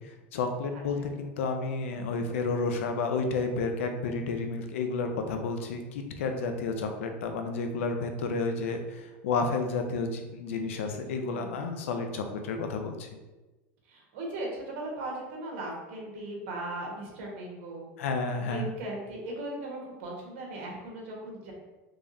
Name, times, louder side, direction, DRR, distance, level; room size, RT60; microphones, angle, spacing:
voice 1, 0.0-13.1 18.0-18.7, left 4 dB, 90° left, 5 dB, 0.5 m, -31 dB
voice 2, 0.7-1.1 10.7-11.6 13.9-17.9 18.4-21.5, right 1 dB, 75° right, -1 dB, 1.2 m, -38 dB
3.5 x 3.2 x 2.6 m, 1.1 s
supercardioid pair, 140°, 7 cm